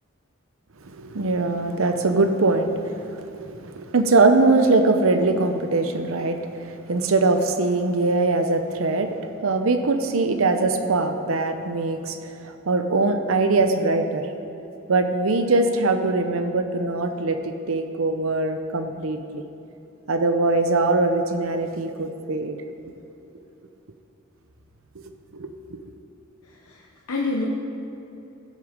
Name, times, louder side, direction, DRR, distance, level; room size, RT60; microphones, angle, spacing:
voice 1, 0.8-9.1 9.4-14.3 14.9-19.4 20.1-22.6 25.0-25.8, right 3 dB, 75° right, 7 dB, 0.7 m, -22 dB
voice 2, 26.4-27.5, left 3 dB, 90° left, -1 dB, 0.9 m, -29 dB
15.0 x 6.6 x 5.2 m, 2.8 s
head